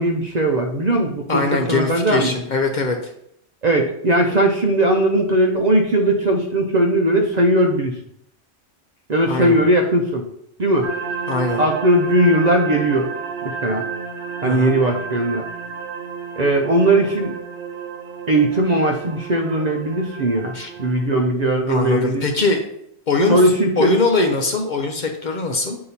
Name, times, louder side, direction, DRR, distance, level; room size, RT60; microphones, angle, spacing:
voice 1, 0.0-2.3 3.6-8.0 9.1-10.2 10.6-10.9 11.6-13.1 13.4-13.9 14.4-15.4 16.4-17.3 18.3-22.3 23.3-24.0, right 1 dB, 45° right, 2 dB, 0.6 m, -18 dB
voice 2, 1.3-3.1 9.3-9.6 11.3-11.6 14.4-14.8 20.5-20.7 21.7-22.6 23.1-23.4 23.8-25.8, left 3 dB, 50° left, 3 dB, 0.8 m, -21 dB
sound 1, 10.8-21.1, right 6 dB, 85° right, 0.9 m, -31 dB
8.2 x 2.8 x 4.1 m, 0.73 s
omnidirectional pair, 1.1 m